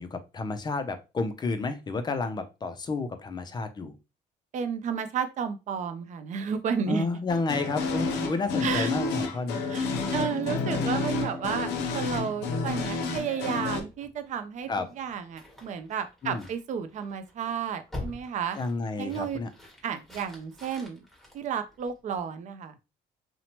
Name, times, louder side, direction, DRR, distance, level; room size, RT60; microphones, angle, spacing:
voice 1, 0.0-3.9 6.9-9.6 12.5-12.8 14.7-14.9 16.2-16.4 18.6-19.5, left 3 dB, 25° left, 10 dB, 0.4 m, -31 dB
voice 2, 4.5-7.1 8.6-8.9 9.7-14.7 15.0-18.6 19.0-19.4 19.8-21.0 21.3-22.8, right 7 dB, 45° right, 9 dB, 0.4 m, -32 dB
sound 1, 7.3-13.8, left 4 dB, 80° left, 0.5 m, -30 dB
sound 2, 13.7-22.2, left 2 dB, ahead, 1.1 m, -46 dB
2.8 x 2.1 x 2.9 m, 0.27 s
cardioid pair, 110°, 17 cm